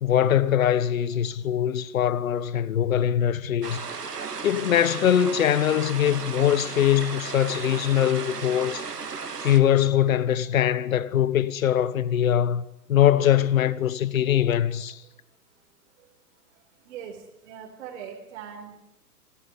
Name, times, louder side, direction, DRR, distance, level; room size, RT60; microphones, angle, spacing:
voice 1, 0.0-3.8 4.4-8.9 9.4-15.0, left 10 dB, 55° left, 1.4 m, -22 dB
sound 1, 3.6-9.6, right 5 dB, 80° right, 3.2 m, -35 dB
voice 2, 16.5-18.8, right 8 dB, 45° right, 4.5 m, -42 dB
26.0 x 14.5 x 9.9 m
figure-of-eight pair, 120°, 47 cm